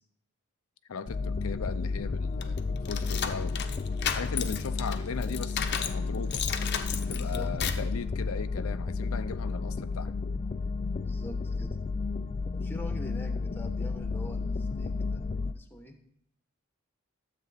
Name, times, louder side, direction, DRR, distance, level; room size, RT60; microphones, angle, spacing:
voice 1, 0.9-3.7 4.1-6.4 7.0-10.1, left 5 dB, 85° left, 10 dB, 0.5 m, -38 dB
sound 1, 1.1-15.5, left 4 dB, 30° left, 0.4 m, -32 dB
sound 2, 2.4-6.0 6.3-7.9, left 8 dB, 55° left, 0.8 m, -33 dB
voice 2, 7.0-7.5 11.0-11.8 12.5-15.2 15.5-16.0, left 1 dB, 10° left, 5 dB, 1.1 m, -44 dB
12.5 x 7.6 x 4.1 m, 0.71 s
head